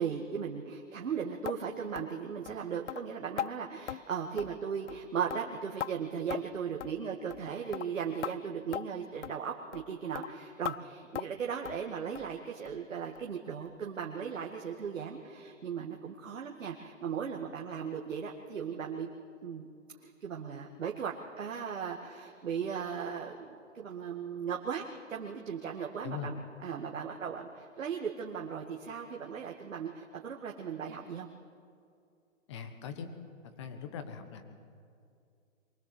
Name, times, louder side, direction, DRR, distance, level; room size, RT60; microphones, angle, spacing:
voice 1, 0.0-19.1 19.4-19.7 20.0-23.5 23.7-26.4 26.6-31.3, right 7 dB, 70° right, 0 dB, 2.1 m, -37 dB
sound 1, 1.5-1.6 2.0-2.1 2.5-2.6 2.9-3.0 3.4-3.5 3.9-4.0 4.4-4.6 4.9-5.0 5.3-5.9 6.3-6.5 6.8-7.0 7.3-7.5 7.7-7.9 8.2-8.3 8.7-8.8 9.2-9.4 9.7-9.9 10.1-10.3 10.6-10.8 11.1-11.4 11.7-11.8 12.2-12.3 12.7-12.8 13.2-13.3 13.7-13.8, left 10 dB, 65° left, 0.5 m, -38 dB
voice 2, 32.5-33.1 33.6-34.4, left 7 dB, 20° left, 8 dB, 1.4 m, -40 dB
23.5 x 19.0 x 7.9 m, 2.4 s
hypercardioid pair, 165°, 40 cm